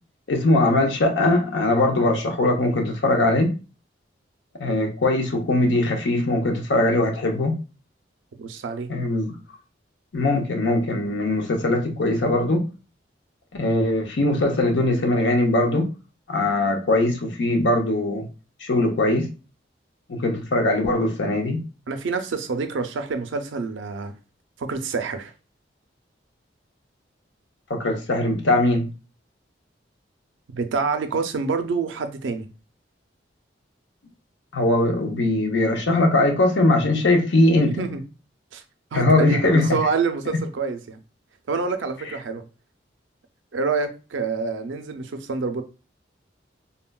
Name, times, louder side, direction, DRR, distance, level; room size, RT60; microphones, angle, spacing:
voice 1, 0.3-3.5 4.6-7.5 8.9-9.3 10.1-12.7 13.5-15.9 16.3-18.3 18.6-19.3 20.1-21.6 27.7-28.9 34.5-37.8 38.9-39.7, left 2 dB, 75° left, 0.7 m, -21 dB
voice 2, 8.4-8.9 21.9-24.1 24.6-25.3 30.5-32.5 37.6-38.0 38.5-38.6 38.9-41.0 41.5-42.4 43.5-45.6, right 4 dB, 85° right, 0.4 m, -27 dB
3.7 x 2.1 x 2.2 m
head